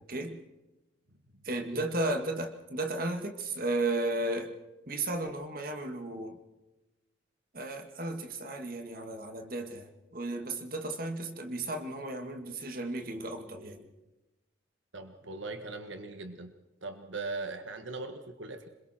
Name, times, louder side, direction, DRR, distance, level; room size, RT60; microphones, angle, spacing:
voice 1, 0.1-0.4 1.4-4.5 4.9-6.4 7.5-13.9, right 2 dB, 45° right, 6 dB, 2.1 m, -34 dB
voice 2, 14.9-16.5 16.8-18.7, right 3 dB, 80° right, 7 dB, 1.6 m, -39 dB
27.0 x 22.0 x 4.5 m, 1.0 s
head